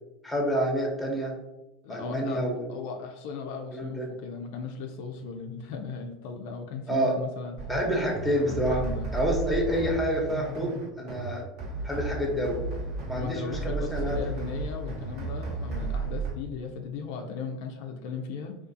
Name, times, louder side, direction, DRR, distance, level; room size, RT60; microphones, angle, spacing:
voice 1, 0.2-1.3 1.9-2.7 3.7-4.1 6.9-7.2 7.7-8.8 9.1-11.4 11.8-12.6 13.1-14.2, equal, 5° left, -1 dB, 0.7 m, -28 dB
voice 2, 1.8-7.6 8.4-9.1 13.2-18.5, left 5 dB, 70° left, 4 dB, 0.3 m, -37 dB
sound 1, 7.6-16.3, right 3 dB, 60° right, 0.8 m, -34 dB
2.4 x 2.3 x 2.5 m, 1.0 s
hypercardioid pair, 100°, 0 cm